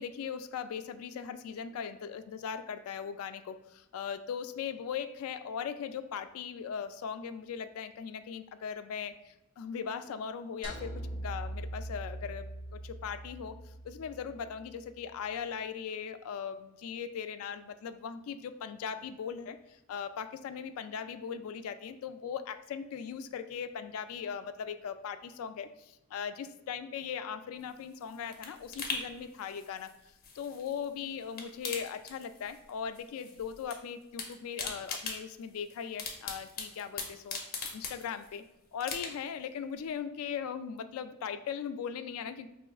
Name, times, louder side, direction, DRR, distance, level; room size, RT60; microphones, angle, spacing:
voice 1, 0.0-12.4 12.7-29.9 30.3-38.4 38.7-42.5, left 7 dB, 75° left, 10 dB, 0.3 m, -39 dB
sound 1, 10.6-15.0, right 1 dB, 25° right, 0.9 m, -42 dB
sound 2, 27.6-30.9 31.2-32.7 32.9-33.8 34.0-38.4 38.8-39.4 39.8-39.9, left 4 dB, 45° left, 0.7 m, -41 dB
5.1 x 3.0 x 2.3 m, 0.92 s
head